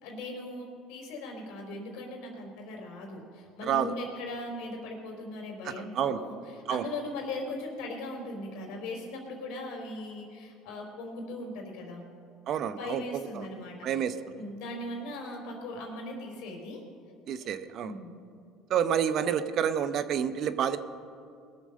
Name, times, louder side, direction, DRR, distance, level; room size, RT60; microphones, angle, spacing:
voice 1, 0.0-12.0 12.7-14.0 14.4-16.8 17.8-18.2, left 2 dB, 75° left, 1 dB, 3.5 m, -39 dB
voice 2, 3.6-3.9 5.6-6.2 6.7-6.8 12.5-13.5 13.8-14.3 17.3-17.9 18.7-20.8, right 8 dB, 55° right, 12 dB, 0.8 m, -29 dB
21.0 x 7.2 x 6.5 m, 2.4 s
supercardioid pair, 90°, 0 cm